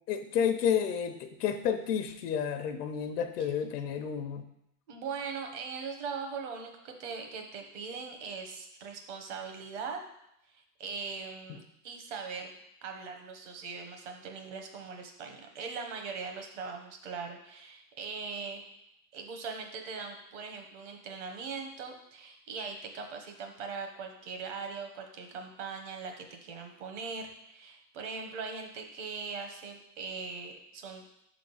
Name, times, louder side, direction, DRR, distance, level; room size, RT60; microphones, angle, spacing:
voice 1, 0.1-4.4, left 8 dB, 85° left, 7 dB, 0.8 m, -30 dB
voice 2, 4.9-10.0 10.5-12.5 12.8-18.6 19.1-31.0, right 5 dB, 50° right, 4 dB, 1.2 m, -40 dB
5.5 x 3.8 x 5.4 m, 0.80 s
supercardioid pair, 160°, 46 cm